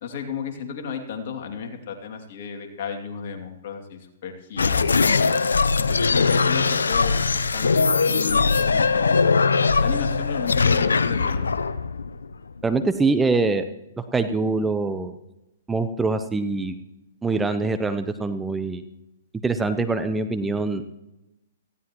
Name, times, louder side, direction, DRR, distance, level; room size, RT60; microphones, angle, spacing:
voice 1, 0.0-5.1 5.8-9.3 9.8-11.5, left 6 dB, 55° left, 3 dB, 2.7 m, -34 dB
sound 1, 4.6-12.8, left 4 dB, 85° left, 0.7 m, -21 dB
voice 2, 12.6-13.7 14.0-15.2 15.7-16.7 17.2-18.8 19.4-20.9, right 3 dB, 10° right, 9 dB, 0.8 m, -24 dB
18.5 x 15.5 x 3.1 m, 0.93 s
hypercardioid pair, 125°, 0 cm